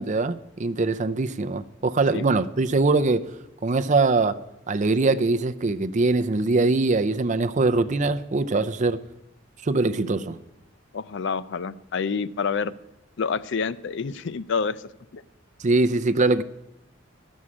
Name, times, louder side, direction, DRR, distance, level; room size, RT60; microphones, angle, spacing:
voice 1, 0.0-4.4 4.7-9.0 9.6-10.4 15.6-16.4, right 3 dB, 35° right, 0.5 m, -22 dB
voice 2, 10.9-12.7 13.2-15.2, left 5 dB, 60° left, 0.4 m, -28 dB
12.0 x 6.3 x 8.5 m
head